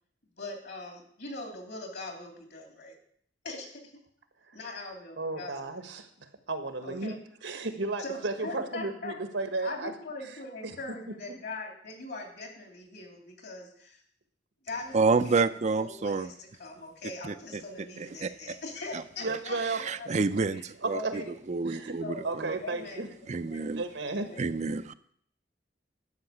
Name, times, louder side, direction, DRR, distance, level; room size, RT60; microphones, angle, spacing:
voice 1, 0.4-3.0 3.4-3.9 4.5-5.7 6.8-7.2 8.0-9.1 9.6-14.0 14.6-20.1 20.5-20.7 20.9-21.3 21.7-22.3 22.6-23.1 23.3-23.7 24.1-24.6, left 2 dB, 60° left, 3 dB, 3.0 m, -41 dB
voice 2, 5.2-7.1 7.4-9.9 10.6-10.8 19.2-19.8 20.1-20.4 20.8-21.2 21.6-22.0 22.2-23.1 23.8-24.3, right 3 dB, 90° right, 8 dB, 1.5 m, -34 dB
voice 3, 14.9-16.3 17.2-17.6 18.0-18.6 18.9-19.0 19.3-19.4 19.8-21.2 21.5-22.6 23.3-23.8 24.4-24.9, right 4 dB, 40° right, 11 dB, 0.5 m, -29 dB
11.5 x 5.8 x 8.5 m, 0.63 s
head